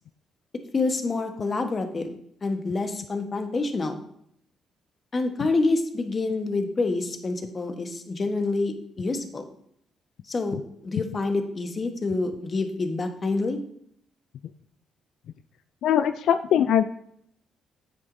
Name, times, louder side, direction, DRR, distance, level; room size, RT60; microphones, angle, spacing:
voice 1, 0.7-4.0 5.1-9.5 10.2-10.6 10.8-13.6, left 3 dB, 35° left, 6 dB, 1.2 m, -27 dB
voice 2, 15.8-16.8, left 9 dB, 75° left, 10 dB, 0.3 m, -21 dB
9.1 x 8.0 x 2.7 m, 0.69 s
cardioid pair, 90°, 0 cm